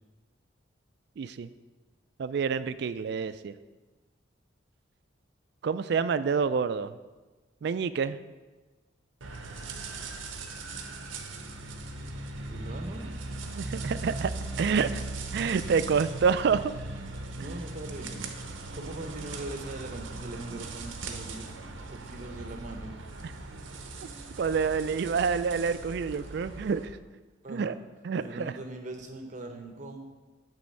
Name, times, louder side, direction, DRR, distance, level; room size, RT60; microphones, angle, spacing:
voice 1, 1.2-1.5 2.2-3.5 5.6-6.9 7.6-8.2 13.6-14.3 14.6-15.0 15.3-16.7 23.2-23.3 24.4-26.9 27.5-27.7 28.0-28.5, right 6 dB, 60° right, 14 dB, 0.3 m, -28 dB
sound 1, 9.2-26.9, right 2 dB, 90° right, 0.8 m, -39 dB
voice 2, 12.5-13.1 17.4-18.2 18.7-21.5 21.9-22.9 27.4-27.7 28.2-30.1, right 2 dB, 40° right, 4 dB, 0.7 m, -41 dB
8.5 x 3.5 x 6.3 m, 1.2 s
head